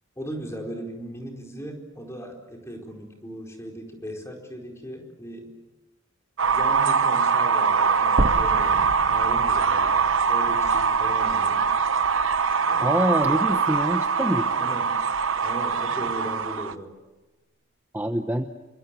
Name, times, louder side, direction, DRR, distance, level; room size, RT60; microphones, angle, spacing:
voice 1, 0.2-5.5 6.4-11.6 12.6-13.0 14.5-14.9 15.4-16.9, equal, 15° left, 1 dB, 4.6 m, -38 dB
sound 1, 6.4-16.7, right 5 dB, 75° right, 1.0 m, -23 dB
sound 2, 8.2-12.3 12.7-12.8 14.2-14.3, right 1 dB, 40° right, 0.9 m, -32 dB
voice 2, 12.8-14.5 17.9-18.5, equal, 10° right, 6 dB, 0.9 m, -25 dB
28.5 x 24.5 x 7.6 m, 1.2 s
head